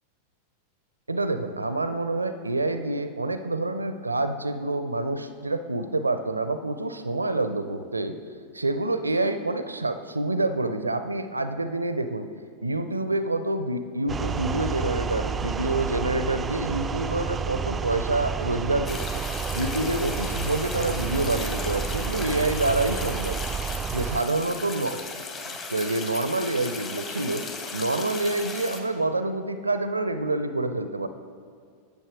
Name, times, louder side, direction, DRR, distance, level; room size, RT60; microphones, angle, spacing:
voice 1, 1.1-8.2 8.5-12.3 12.6-19.2 19.5-23.4 23.9-25.0 25.7-27.4 27.7-31.1, right 2 dB, 80° right, 10 dB, 0.4 m, -27 dB
sound 1, 14.1-24.2, right 6 dB, 20° right, 0.3 m, -30 dB
sound 2, 18.8-28.8, left 4 dB, 25° left, 1.3 m, -36 dB
10.5 x 7.3 x 4.8 m, 2.1 s
figure-of-eight pair, 90°, 0 cm